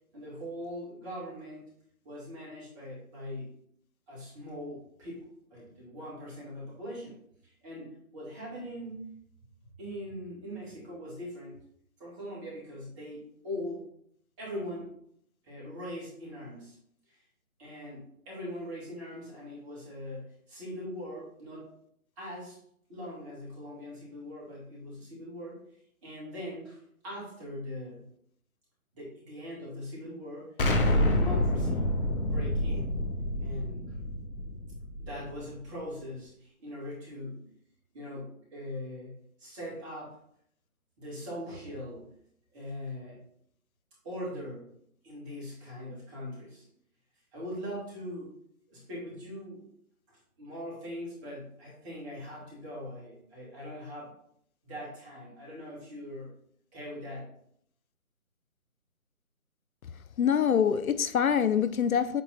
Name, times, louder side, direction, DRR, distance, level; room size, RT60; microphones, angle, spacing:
voice 1, 0.1-1.7 2.0-3.5 4.1-9.2 9.8-11.6 12.0-13.8 14.4-14.9 15.4-16.8 17.1-17.2 17.6-21.7 22.2-22.6 22.9-25.6 26.0-28.0 28.9-30.5 30.8-31.9 32.2-33.0 33.4-33.9 35.0-37.5 37.9-39.1 39.4-40.2 41.0-42.1 42.5-43.2 44.0-44.7 45.0-46.7 47.3-48.3 48.7-49.7 50.1-54.1 54.6-56.3 56.7-57.3, left 1 dB, 20° right, 2.2 m, -41 dB
Explosion, 30.6-35.4, left 1 dB, 40° left, 0.9 m, -28 dB
voice 2, 60.2-62.2, left 8 dB, 70° left, 0.6 m, -25 dB
8.0 x 3.0 x 4.1 m
figure-of-eight pair, 150°, 43 cm